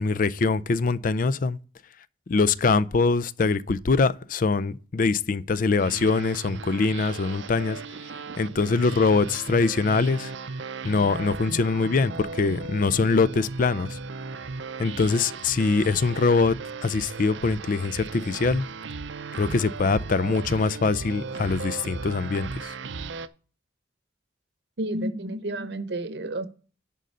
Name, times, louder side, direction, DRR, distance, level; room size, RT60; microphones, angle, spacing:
voice 1, 0.0-1.6 2.3-7.8 8.4-10.3 10.8-14.0 14.8-16.6 16.8-18.7 19.3-22.7, left 4 dB, 50° left, 0.5 m, -23 dB
sound 1, 5.8-23.3, right 4 dB, 90° right, 0.6 m, -36 dB
voice 2, 24.8-26.5, right 1 dB, 65° right, 0.9 m, -30 dB
11.0 x 3.8 x 6.5 m
head